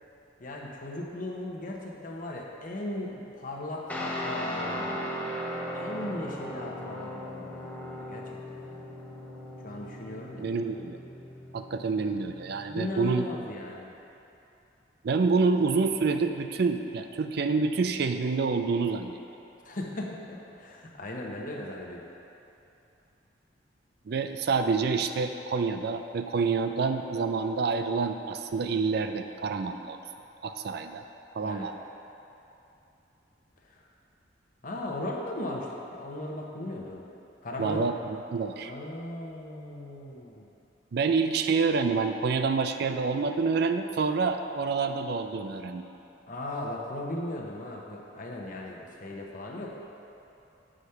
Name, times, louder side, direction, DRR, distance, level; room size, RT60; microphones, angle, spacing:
voice 1, 0.4-5.3 5.7-8.9 9.6-10.4 12.7-13.9 19.6-22.0 31.4-31.7 33.7-33.8 34.6-37.1 37.4-37.9 38.6-40.5 46.3-49.8, left 1 dB, 45° left, -1 dB, 1.0 m, -37 dB
Guitar, 3.9-12.8, equal, 10° left, 0.8 m, -37 dB
voice 2, 10.4-11.0 11.5-13.3 15.0-19.2 24.1-30.0 30.4-31.0 31.4-31.7 37.6-38.7 40.9-45.9, right 4 dB, 60° right, 7 dB, 0.4 m, -27 dB
8.0 x 5.1 x 5.7 m, 2.8 s
head